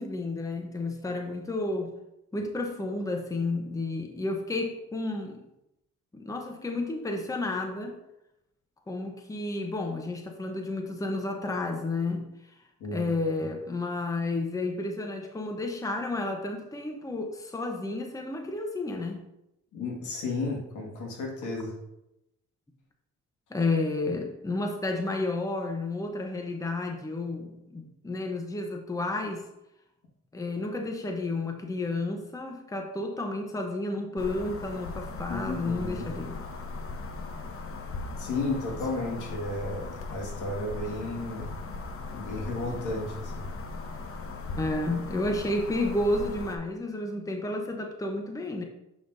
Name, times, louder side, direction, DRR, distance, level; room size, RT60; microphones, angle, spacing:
voice 1, 0.0-1.9 2.3-5.4 6.1-8.0 8.9-12.3 12.9-19.2 23.5-29.5 30.3-36.4 44.5-48.6, left 2 dB, 10° left, 3 dB, 0.8 m, -31 dB
voice 2, 12.8-13.1 19.7-21.7 35.3-36.1 38.2-41.5 42.1-43.4, left 2 dB, 80° left, -1 dB, 1.9 m, -33 dB
sound 1, 34.2-46.6, left 3 dB, 45° left, 0.9 m, -38 dB
7.1 x 5.7 x 2.6 m, 0.87 s
cardioid pair, 90°, 30 cm